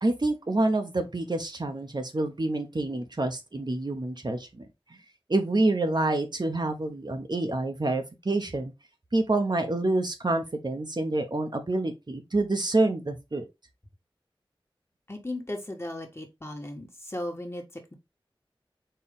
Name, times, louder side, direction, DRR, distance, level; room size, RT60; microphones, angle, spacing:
voice 1, 0.0-4.7 5.3-8.7 9.1-13.4, right 2 dB, 50° right, 0.9 m, -27 dB
voice 2, 15.1-17.9, left 1 dB, 30° left, 1.4 m, -36 dB
4.5 x 3.0 x 3.5 m
wide cardioid pair, 40°, 9 cm